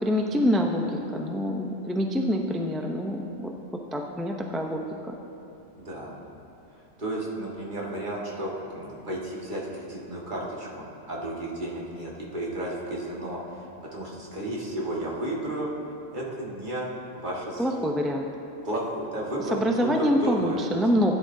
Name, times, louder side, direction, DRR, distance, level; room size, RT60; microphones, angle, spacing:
voice 1, 0.0-5.2 17.6-18.3 19.5-21.2, equal, ahead, 1 dB, 0.3 m, -26 dB
voice 2, 5.8-6.1 7.0-15.7 16.1-16.9 17.2-17.6 18.6-20.6, right 1 dB, 40° right, -4 dB, 1.8 m, -33 dB
16.5 x 10.5 x 2.7 m, 2.8 s
omnidirectional pair, 1.2 m